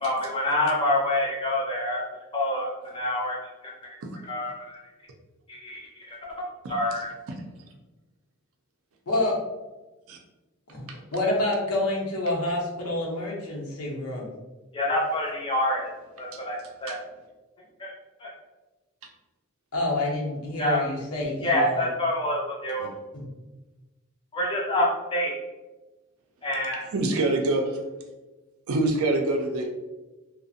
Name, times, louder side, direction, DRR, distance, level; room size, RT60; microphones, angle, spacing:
voice 1, 0.0-2.0 2.3-2.7 2.9-3.4 3.6-3.7 4.3-4.8 5.5-7.1 14.7-15.9 16.2-17.0 17.8-17.9 18.2-18.3 20.6-20.8 21.4-22.9 24.3-24.9 25.1-25.3 26.4-26.8, left 1 dB, 25° left, -3 dB, 0.5 m, -27 dB
voice 2, 6.6-7.0 10.1-10.2 10.9-11.0 16.3-16.4 16.9-17.0 26.9-27.8 28.7-29.7, right 2 dB, 75° right, 2 dB, 0.4 m, -26 dB
voice 3, 9.1-9.4 10.7-14.3 19.7-21.9 22.8-22.9 23.1-23.3, left 1 dB, 90° left, -3 dB, 0.7 m, -28 dB
2.4 x 2.0 x 2.6 m, 1.1 s
head